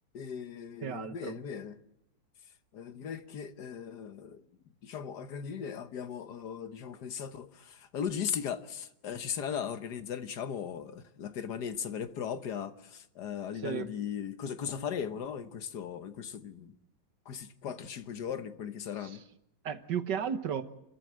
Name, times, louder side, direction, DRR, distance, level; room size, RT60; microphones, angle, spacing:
voice 1, 0.1-1.8 2.7-4.4 4.8-16.7 17.2-19.2, left 8 dB, 65° left, 1.6 m, -38 dB
voice 2, 0.8-1.4 13.6-13.9 19.0-19.2 19.6-20.6, right 8 dB, 65° right, 1.7 m, -34 dB
29.5 x 14.0 x 7.7 m
omnidirectional pair, 2.0 m